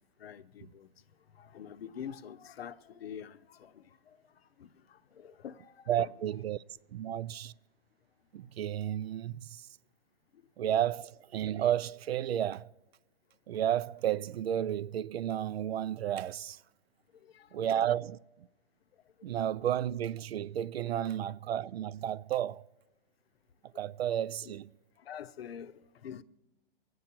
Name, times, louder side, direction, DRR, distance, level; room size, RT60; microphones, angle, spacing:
voice 1, 0.2-0.9 1.3-4.2 4.6-6.1 17.2-17.5 24.1-24.6 25.0-26.2, left 8 dB, 80° left, 0.8 m, -46 dB
voice 2, 5.9-6.6 6.9-7.5 8.3-9.7 10.6-12.7 13.5-16.6 17.5-18.2 19.2-22.6 23.8-24.7, right 10 dB, 85° right, 0.5 m, -32 dB
24.0 x 8.6 x 4.5 m
hypercardioid pair, 160°, 30 cm